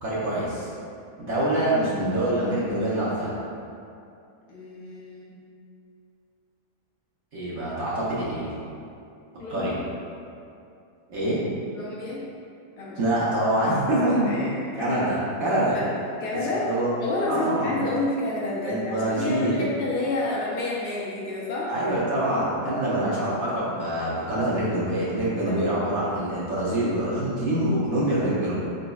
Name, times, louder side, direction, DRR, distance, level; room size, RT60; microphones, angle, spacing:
voice 1, 0.0-0.7 1.2-3.3 7.3-8.5 9.5-9.8 11.1-11.4 13.0-14.4 14.7-15.8 16.4-16.9 17.3-17.8 18.6-19.7 21.7-28.6, right 1 dB, 60° right, -8 dB, 1.1 m, -25 dB
voice 2, 4.5-5.4 9.4-9.9 11.7-12.2 12.8-13.0 14.3-15.3 15.7-15.9 16.2-16.7 17.0-21.7 25.5-25.6, left 2 dB, 70° left, -5 dB, 1.1 m, -30 dB
4.2 x 4.1 x 2.3 m, 2.5 s
omnidirectional pair, 1.9 m